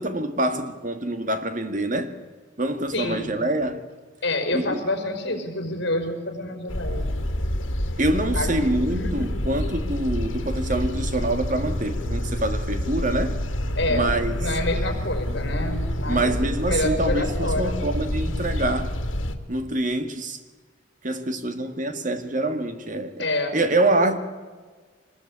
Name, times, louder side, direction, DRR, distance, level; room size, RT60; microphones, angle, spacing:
voice 1, 0.0-2.2 2.6-3.8 4.5-4.8 8.0-13.4 13.9-14.4 16.1-19.0 19.5-20.4 21.0-23.2 23.5-24.2, right 1 dB, 40° right, 1.9 m, -25 dB
voice 2, 2.9-3.4 4.2-7.3 8.3-9.3 13.7-16.3 16.6-17.7 23.2-23.7, left 1 dB, 60° left, 5.0 m, -28 dB
sound 1, 6.7-19.3, equal, 85° left, 2.3 m, -27 dB
24.5 x 20.0 x 8.8 m
head